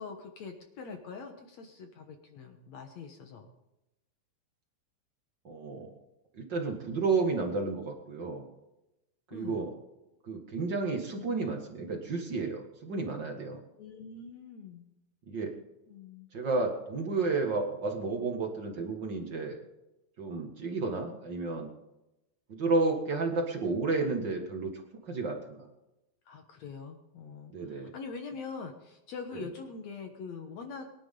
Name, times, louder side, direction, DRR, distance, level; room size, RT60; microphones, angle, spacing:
voice 1, 0.0-3.5 9.3-9.7 13.8-14.8 15.9-16.3 26.3-30.9, left 5 dB, 75° left, 5 dB, 1.6 m, -43 dB
voice 2, 5.4-5.9 6.3-8.4 9.3-9.7 10.2-13.6 15.3-15.5 16.3-19.6 20.2-21.7 22.5-25.6 27.5-27.9, right 3 dB, 50° right, 2 dB, 1.3 m, -32 dB
22.5 x 11.5 x 3.8 m, 0.93 s
omnidirectional pair, 4.8 m